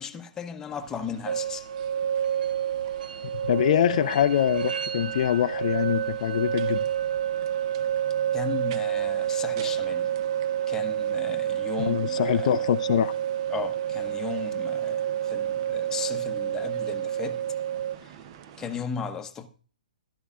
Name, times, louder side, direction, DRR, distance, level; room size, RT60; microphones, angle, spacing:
voice 1, 0.0-1.6 8.3-10.1 10.7-12.6 13.5-17.4 18.6-19.5, left 6 dB, 10° left, 0.8 m, -36 dB
sound 1, 0.7-18.8, right 8 dB, 40° right, 0.7 m, -47 dB
sound 2, 1.3-18.0, right 10 dB, 90° right, 0.5 m, -29 dB
voice 2, 3.4-6.8 11.8-13.1, left 11 dB, 55° left, 0.4 m, -24 dB
15.0 x 12.5 x 2.4 m
hypercardioid pair, 145°, 5 cm